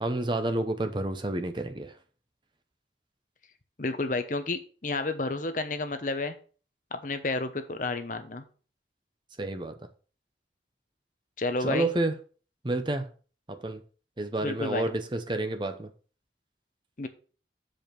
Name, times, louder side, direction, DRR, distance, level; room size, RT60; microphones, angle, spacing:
voice 1, 0.0-1.9 9.4-9.8 11.6-12.1 12.6-13.1 13.5-13.8 14.2-15.9, right 2 dB, 25° right, 0.7 m, -29 dB
voice 2, 3.8-6.3 6.9-8.4 11.4-11.9 14.4-14.9 17.0-17.1, left 3 dB, 45° left, 0.9 m, -31 dB
7.0 x 5.2 x 5.9 m
head